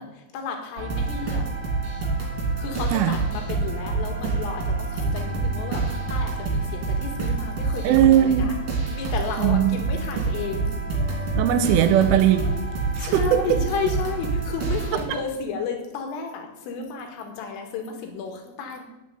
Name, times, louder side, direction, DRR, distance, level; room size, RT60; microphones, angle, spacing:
voice 1, 0.0-1.5 2.6-8.6 8.9-10.7 11.3-11.4 13.0-18.8, left 5 dB, 80° left, 4 dB, 4.4 m, -33 dB
sound 1, 0.8-15.0, right 3 dB, 35° right, 3.3 m, -27 dB
voice 2, 7.8-8.5 9.4-9.8 11.4-12.4 13.0-13.6, right 11 dB, 80° right, 10 dB, 3.2 m, -19 dB
9.4 x 7.5 x 9.2 m, 0.96 s
omnidirectional pair, 5.8 m